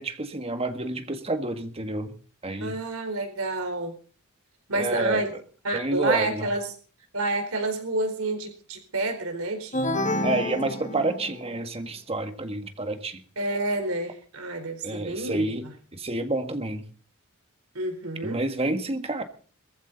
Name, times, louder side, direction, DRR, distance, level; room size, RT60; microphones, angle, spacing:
voice 1, 0.0-2.1 2.4-2.7 4.7-5.2 5.7-6.5 10.2-13.2 14.8-16.8 18.2-19.2, right 2 dB, 25° right, 1.7 m, -29 dB
voice 2, 2.6-3.9 4.7-5.3 5.6-6.7 7.1-10.1 13.4-15.7 17.7-18.4, right 2 dB, 70° right, 4.2 m, -29 dB
sound 1, 9.7-11.6, left 1 dB, 35° left, 1.5 m, -28 dB
21.0 x 15.0 x 4.1 m
head